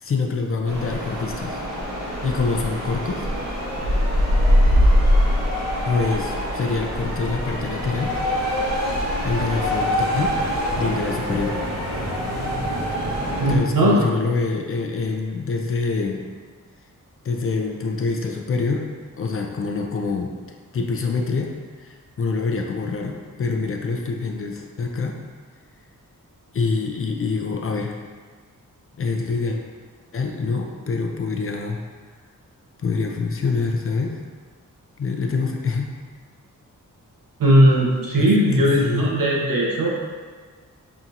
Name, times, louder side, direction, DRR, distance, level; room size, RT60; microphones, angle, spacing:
voice 1, 0.0-1.6 2.2-3.3 5.8-8.2 9.2-10.4 10.8-11.6 13.5-16.2 17.2-18.9 19.2-20.3 20.7-21.5 21.8-25.2 26.5-28.0 29.0-29.6 30.1-31.8 32.8-34.2 35.0-35.9 38.2-38.3 38.6-39.1, left 4 dB, 40° left, 2 dB, 0.4 m, -25 dB
sound 1, 0.7-13.6, equal, 50° right, 0.9 m, -23 dB
voice 2, 13.4-14.0 37.4-39.9, equal, 80° right, -3 dB, 1.0 m, -18 dB
5.8 x 2.8 x 2.5 m, 1.5 s
wide cardioid pair, 120°, 33 cm